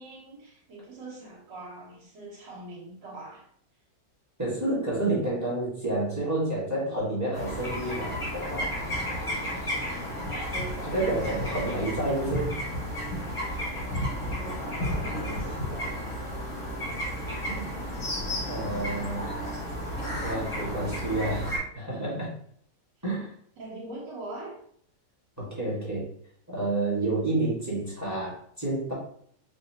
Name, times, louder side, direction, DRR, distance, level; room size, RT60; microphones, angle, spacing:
voice 1, 0.0-3.5 10.1-10.8 14.9-16.0 23.6-24.5, right 2 dB, 75° right, -5 dB, 1.8 m, -42 dB
voice 2, 4.4-8.7 10.8-12.5 17.5-17.7 18.5-19.3 20.0-22.3 23.0-23.3 25.4-26.0 26.5-28.9, right 2 dB, 10° right, -6 dB, 1.3 m, -29 dB
sound 1, 7.3-21.6, equal, 20° left, 1.0 m, -32 dB
4.7 x 2.6 x 2.7 m, 0.63 s
omnidirectional pair, 2.0 m